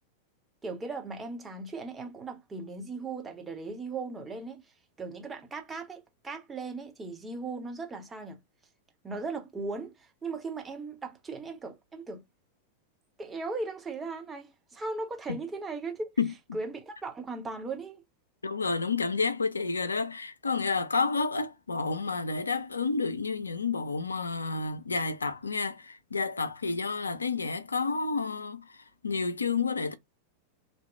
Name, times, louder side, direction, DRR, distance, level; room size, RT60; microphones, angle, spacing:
voice 1, 0.6-4.7 5.0-8.4 9.0-12.2 13.2-16.2 16.5-18.0, right 3 dB, 15° right, 0.8 m, -38 dB
voice 2, 18.4-28.8 29.0-29.9, left 4 dB, 75° left, 0.4 m, -30 dB
2.8 x 2.1 x 3.2 m
figure-of-eight pair, 90°, 0 cm